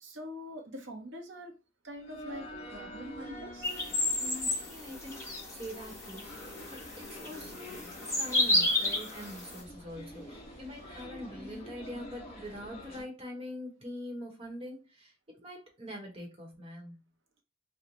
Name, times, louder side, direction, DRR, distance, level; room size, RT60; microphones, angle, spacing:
voice 1, 0.0-1.6 1.8-3.7, equal, 70° right, 0.8 m, -44 dB
sound 1, 2.0-13.0, equal, 30° left, 1.0 m, -47 dB
sound 2, 3.6-9.6, left 1 dB, 15° left, 1.1 m, -32 dB
voice 2, 4.1-5.2 5.5-15.1 15.4-16.9, left 1 dB, 30° right, 1.0 m, -44 dB
3.1 x 2.1 x 3.9 m
head